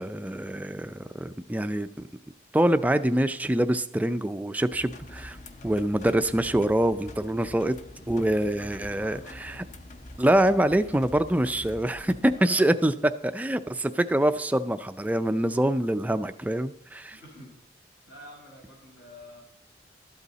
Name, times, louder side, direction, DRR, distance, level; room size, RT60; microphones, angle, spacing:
voice 1, 0.0-1.9 2.5-5.4 5.6-7.8 8.1-9.6 10.2-17.2, right 1 dB, 10° right, 10 dB, 0.3 m, -25 dB
sound 1, 4.7-12.4, left 1 dB, 40° left, 0.7 m, -45 dB
voice 2, 5.3-5.7 8.3-9.6 12.3-12.7 17.1-17.6 18.1-19.4, left 1 dB, 85° left, -2 dB, 5.1 m, -48 dB
12.5 x 8.2 x 4.0 m, 0.77 s
head